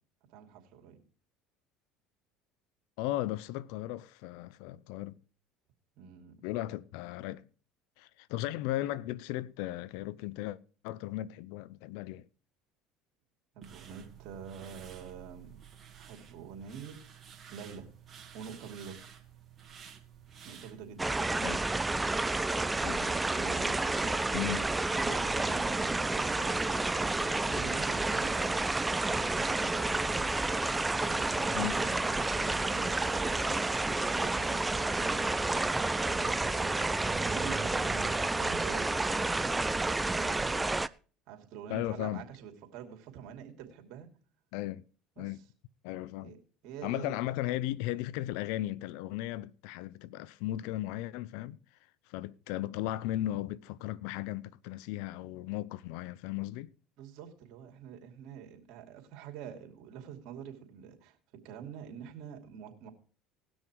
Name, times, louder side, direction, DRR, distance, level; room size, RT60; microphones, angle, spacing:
voice 1, 0.3-1.0 6.0-6.4 13.5-15.6 15.9-17.2 17.5-17.9 18.3-19.0 20.4-21.3 22.9-24.7 25.0-30.4 31.0-35.4 36.1-39.5 40.1-40.5 41.3-44.1 45.2-45.4 46.2-46.4 46.6-47.2 57.0-62.9, right 7 dB, 65° right, 2.8 m, -46 dB
voice 2, 3.0-5.2 6.4-7.5 8.0-10.6 10.8-12.3 21.4-21.6 22.8-23.1 24.3-24.6 31.5-31.7 41.7-42.2 44.5-44.8 45.2-45.4 45.8-46.3 46.8-51.6 52.1-56.7, left 15 dB, 75° left, 0.6 m, -36 dB
sound 1, 13.6-21.1, right 8 dB, 35° right, 2.4 m, -52 dB
sound 2, 21.0-40.9, right 2 dB, 15° right, 0.5 m, -30 dB
18.5 x 6.3 x 4.5 m
supercardioid pair, 90°, 0 cm